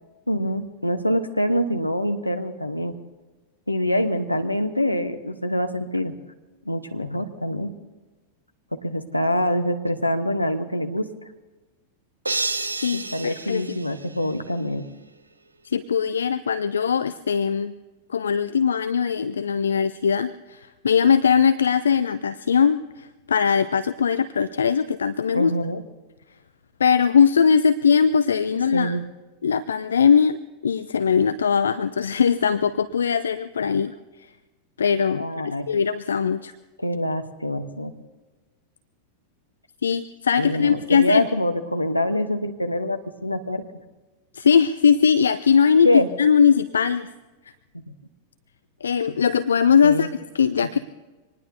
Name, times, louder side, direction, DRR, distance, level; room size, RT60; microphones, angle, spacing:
voice 1, 0.3-2.9 3.7-6.1 6.6-7.7 8.8-11.1 12.9-14.8 25.3-25.8 28.7-29.0 35.2-35.7 36.8-37.9 40.4-43.6 45.8-46.1 47.9-48.0 49.8-50.1, left 1 dB, 85° left, 7 dB, 1.0 m, -25 dB
sound 1, 12.3-14.6, right 3 dB, 80° right, 0.6 m, -30 dB
voice 2, 12.8-13.6 15.6-17.7 18.1-25.5 26.8-29.0 29.4-30.4 30.6-33.9 34.2-34.3 34.8-36.5 39.8-41.2 44.3-47.1 48.8-50.1 50.3-50.8, left 6 dB, 70° left, 14 dB, 0.4 m, -20 dB
25.0 x 19.5 x 2.7 m, 1.2 s
figure-of-eight pair, 90°, 0 cm